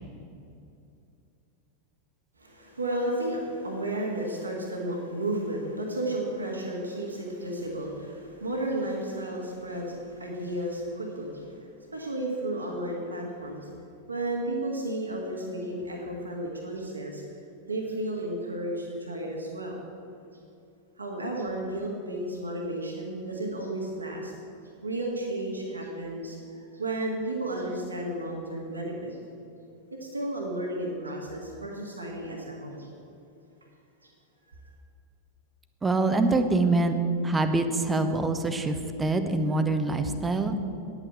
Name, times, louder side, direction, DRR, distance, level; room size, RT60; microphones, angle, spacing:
voice 1, 2.4-13.7 14.1-17.2 17.7-19.8 21.0-24.3 24.8-29.2 30.0-32.9 34.0-34.1 34.6-34.7, right 1 dB, 80° right, -1 dB, 1.9 m, -33 dB
voice 2, 35.8-37.0 37.2-40.6, right 2 dB, 15° right, 8 dB, 1.0 m, -25 dB
10.0 x 9.1 x 7.9 m, 2.7 s
figure-of-eight pair, 90°, 0 cm